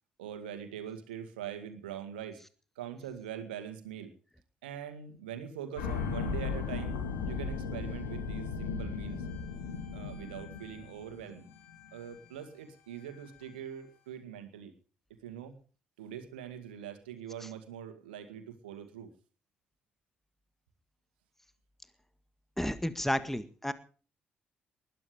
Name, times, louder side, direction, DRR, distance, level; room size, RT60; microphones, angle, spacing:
voice 1, 0.2-2.4 2.8-4.1 4.6-7.0 7.3-9.3 9.9-11.5 11.9-14.7 15.2-15.6 16.0-19.1, right 9 dB, 85° right, 8 dB, 2.0 m, -43 dB
sound 1, 5.8-12.0 12.2-12.3, left 5 dB, 85° left, 2.9 m, -36 dB
voice 2, 22.6-23.7, equal, 5° left, 12 dB, 1.9 m, -31 dB
20.0 x 12.5 x 5.0 m, 0.40 s
hypercardioid pair, 40°, 5 cm